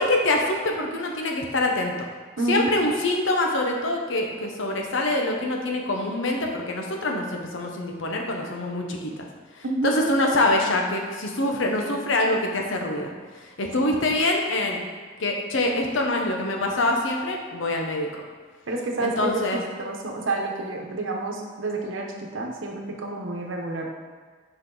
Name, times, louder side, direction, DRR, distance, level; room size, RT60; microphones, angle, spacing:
voice 1, 0.0-1.9 2.5-9.2 9.8-13.1 13.6-14.8 15.2-18.1 19.0-19.6, left 2 dB, 80° left, 1 dB, 0.9 m, -25 dB
voice 2, 2.4-2.7 9.6-9.9 13.8-14.0 18.7-19.4 19.8-23.9, right 2 dB, 85° right, 1 dB, 0.9 m, -29 dB
6.0 x 5.0 x 3.9 m, 1.5 s
head